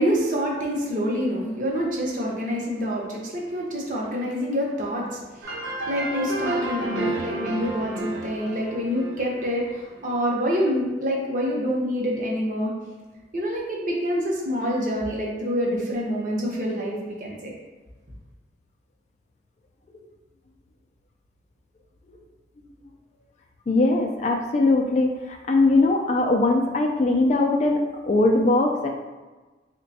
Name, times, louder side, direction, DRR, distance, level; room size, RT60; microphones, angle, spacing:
voice 1, 0.0-5.6 5.9-12.7 13.3-17.5, equal, 45° right, -3 dB, 0.7 m, -26 dB
sound 1, 5.4-10.0, right 1 dB, 85° right, 0.8 m, -31 dB
voice 2, 23.7-28.9, left 2 dB, 40° left, 2 dB, 0.3 m, -21 dB
3.3 x 2.2 x 4.0 m, 1.2 s
head